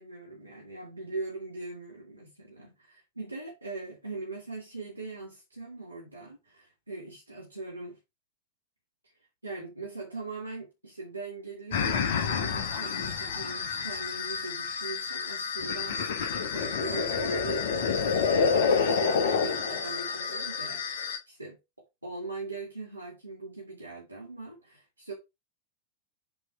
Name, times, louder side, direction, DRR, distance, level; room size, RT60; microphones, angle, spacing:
voice 1, 0.0-8.0 9.4-20.8 21.3-21.6 22.0-25.1, right 3 dB, 85° right, 1.8 m, -40 dB
sound 1, 11.7-21.2, left 5 dB, 55° left, 1.0 m, -29 dB
7.9 x 3.1 x 4.5 m
figure-of-eight pair, 90°, 0 cm